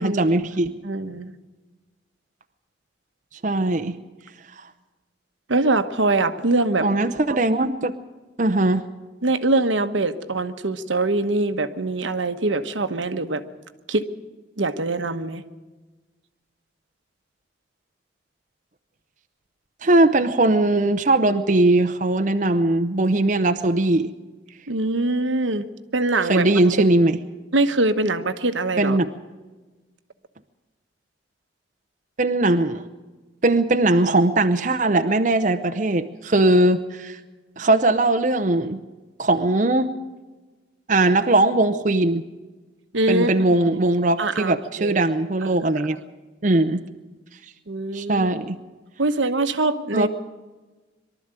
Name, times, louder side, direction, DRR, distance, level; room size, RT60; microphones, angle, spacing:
voice 1, 0.0-0.7 3.4-4.0 6.8-7.9 8.4-8.9 19.8-24.1 26.2-27.2 28.8-29.1 32.2-32.8 33.4-37.2 37.6-38.8 39.2-39.9 40.9-42.2 43.1-46.0 46.4-46.8 47.9-48.6 49.9-50.1, right 2 dB, 40° right, 8 dB, 0.7 m, -20 dB
voice 2, 0.8-1.3 5.5-6.9 7.3-7.4 9.2-13.4 13.9-14.1 14.6-15.4 24.7-25.7 25.9-26.5 27.5-29.0 42.9-43.4 43.7-43.8 44.2-45.0 45.4-45.6 47.7-48.3 49.0-50.1, right 2 dB, 80° right, 9 dB, 1.1 m, -23 dB
23.0 x 12.5 x 9.0 m, 1.2 s
head